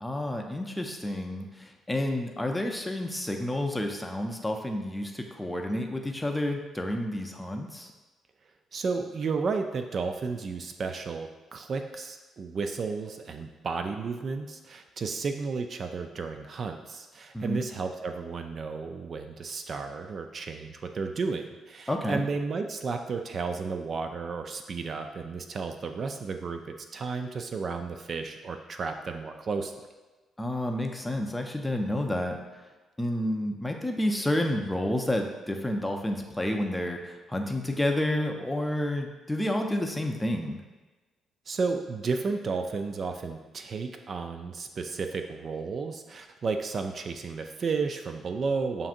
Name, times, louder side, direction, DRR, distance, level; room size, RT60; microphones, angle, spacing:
voice 1, 0.0-7.9 17.3-17.6 21.9-22.2 30.4-32.4 33.0-40.6, left 1 dB, 10° left, 2 dB, 0.5 m, -30 dB
voice 2, 8.7-29.9 41.5-48.9, right 4 dB, 50° right, 6 dB, 0.3 m, -33 dB
6.9 x 2.6 x 2.5 m, 1.2 s
cardioid pair, 90°, 0 cm